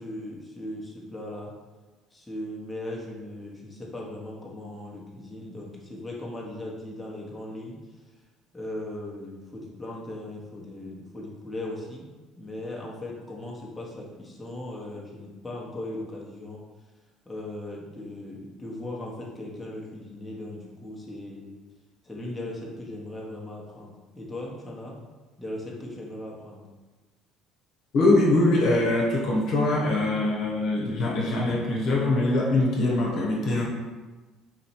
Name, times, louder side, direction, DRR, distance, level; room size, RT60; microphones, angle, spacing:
voice 1, 0.0-1.5 2.1-7.8 8.5-12.0 12.4-16.6 17.2-21.5 22.0-24.9 25.4-26.7, left 1 dB, 10° left, -3 dB, 1.2 m, -38 dB
voice 2, 27.9-33.6, left 2 dB, 60° left, -2 dB, 1.0 m, -23 dB
4.2 x 2.7 x 4.5 m, 1.2 s
supercardioid pair, 75°, 0 cm